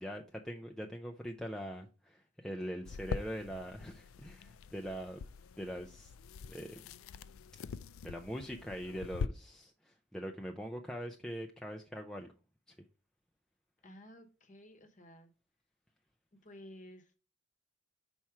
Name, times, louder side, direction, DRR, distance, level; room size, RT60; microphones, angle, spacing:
voice 1, 0.0-5.2 5.6-6.1 6.5-6.8 8.0-12.3 12.7-12.8, equal, 5° left, 0.4 m, -42 dB
sound 1, 2.8-9.3, left 5 dB, 80° left, 0.4 m, -44 dB
voice 2, 13.8-15.3 16.3-17.1, equal, 35° left, 0.9 m, -54 dB
5.9 x 4.3 x 4.6 m
head